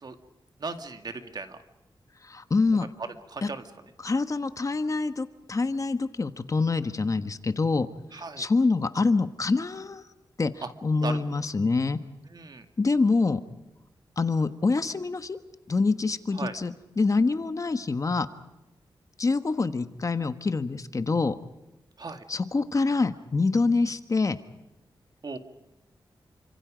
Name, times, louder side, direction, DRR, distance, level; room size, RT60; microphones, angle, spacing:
voice 1, 0.6-1.6 2.8-2.9 3.3-3.6 8.1-8.5 10.6-10.7 11.0-11.2 12.3-12.7 16.3-16.6 22.0-22.2 25.2-25.4, right 4 dB, 50° right, 7 dB, 2.3 m, -36 dB
voice 2, 2.2-2.9 3.4-3.5 4.0-7.9 8.4-10.0 10.4-12.0 12.8-13.4 14.2-15.4 15.7-18.3 19.2-21.4 22.3-24.4, left 3 dB, 40° left, 10 dB, 1.3 m, -25 dB
29.0 x 26.0 x 5.1 m, 0.97 s
wide cardioid pair, 95°, 9 cm